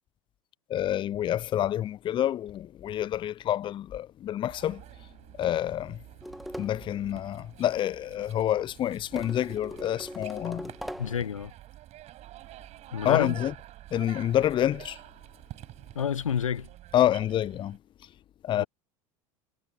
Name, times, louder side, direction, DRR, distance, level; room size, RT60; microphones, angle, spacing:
voice 1, 0.7-4.8 5.4-6.0 6.6-10.7 13.0-13.5 13.9-15.0 16.9-17.8 18.4-18.6, left 11 dB, 30° left, 0.7 m, -28 dB
sound 1, 4.5-17.8, right 15 dB, 40° right, 7.9 m, -48 dB
sound 2, 6.2-6.9 9.2-11.3, equal, ahead, 2.4 m, -40 dB
voice 2, 11.0-11.5 12.9-13.4 15.9-16.7 18.6-18.7, left 8 dB, 75° left, 1.0 m, -29 dB
figure-of-eight pair, 80°, 17 cm